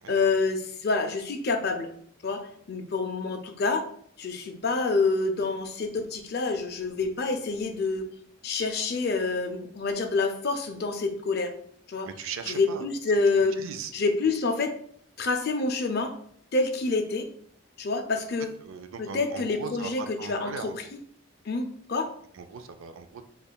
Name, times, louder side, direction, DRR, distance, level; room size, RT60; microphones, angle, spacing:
voice 1, 0.1-1.9 2.2-3.9 4.2-8.0 8.4-11.5 11.9-12.1 12.5-13.6 13.9-14.8 15.2-16.1 16.5-17.3 17.8-18.5 19.0-20.7 21.5-22.1, left 3 dB, 50° left, 6 dB, 0.4 m, -27 dB
voice 2, 12.1-12.9 13.4-13.9 18.6-20.9 22.3-23.2, right 6 dB, 70° right, 8 dB, 0.4 m, -39 dB
5.2 x 2.3 x 2.2 m, 0.62 s
head